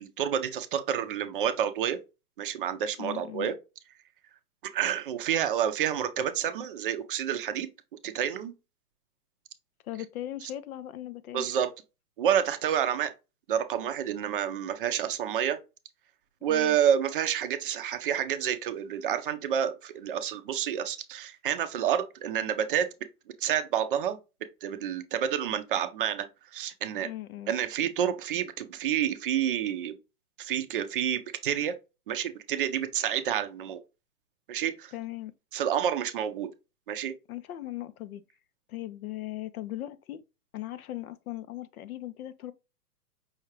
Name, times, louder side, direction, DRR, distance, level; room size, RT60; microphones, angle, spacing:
voice 1, 0.0-2.0 2.4-3.5 4.7-7.7 8.0-8.5 11.3-11.7 12.2-13.1 13.5-15.6 16.4-22.9 23.4-24.2 24.6-26.3 26.5-27.1 27.5-30.0 30.4-31.7 32.1-33.8 34.5-34.9 35.5-36.5 36.9-37.1, right 9 dB, 35° right, 0.5 m, -29 dB
voice 2, 3.0-3.5 9.8-11.5 16.5-16.8 27.0-27.5 34.9-35.3 37.3-38.2 38.7-40.2 40.5-42.5, left 14 dB, 60° left, 0.6 m, -38 dB
5.6 x 2.3 x 3.2 m
hypercardioid pair, 135°, 49 cm